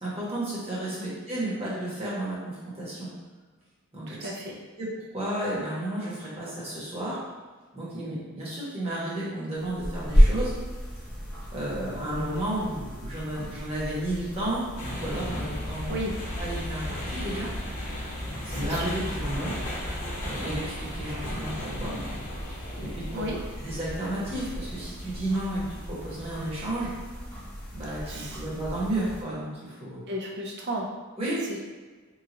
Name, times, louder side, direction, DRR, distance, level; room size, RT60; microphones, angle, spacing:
voice 1, 0.0-3.1 3.9-4.3 4.8-7.2 7.7-10.5 11.5-14.6 15.0-15.9 16.4-17.5 18.4-19.5 20.2-21.9 22.8-23.2 23.6-26.9 27.7-30.0 31.2-31.4, right 1 dB, 25° right, -7 dB, 1.1 m, -32 dB
voice 2, 4.1-4.6 15.9-16.1 18.5-18.8 23.1-23.4 28.0-28.4 30.1-30.9 31.5-31.6, right 1 dB, 50° right, -1 dB, 0.6 m, -34 dB
sound 1, 9.6-29.2, equal, 10° left, 0.8 m, -32 dB
sound 2, 14.8-26.8, left 1 dB, 40° left, 0.9 m, -36 dB
3.1 x 2.4 x 3.7 m, 1.4 s
head